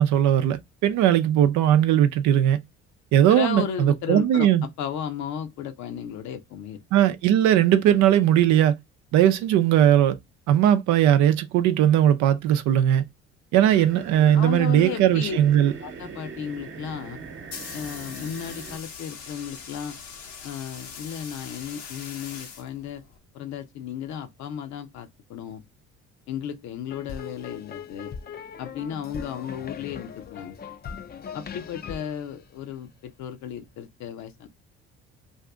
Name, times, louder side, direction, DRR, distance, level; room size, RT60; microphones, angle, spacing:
voice 1, 0.0-2.6 3.1-4.6 6.9-8.8 9.1-10.2 10.5-13.0 13.5-15.7, right 11 dB, 70° right, 0.6 m, -19 dB
voice 2, 3.3-4.5 4.8-6.8 14.3-15.4 15.8-17.2 17.7-20.0 20.4-23.0 23.3-25.6 26.3-28.1 28.6-30.6 31.3-34.5, left 9 dB, 65° left, 0.8 m, -34 dB
sound 1, 13.6-18.8, right 5 dB, 40° right, 0.9 m, -41 dB
sound 2, 17.2-23.2, left 6 dB, 85° left, 1.0 m, -41 dB
sound 3, 26.9-33.2, left 7 dB, 30° left, 0.5 m, -39 dB
2.7 x 2.5 x 3.4 m
supercardioid pair, 65°, 30 cm